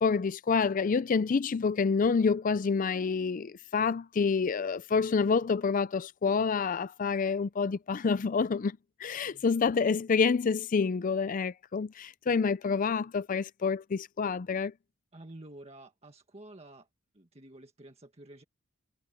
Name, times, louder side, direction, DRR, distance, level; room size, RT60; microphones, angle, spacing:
voice 1, 0.0-14.7, left 5 dB, 40° left, 0.4 m, -28 dB
voice 2, 15.1-16.9 17.1-18.4, right 1 dB, 30° right, 1.7 m, -50 dB
head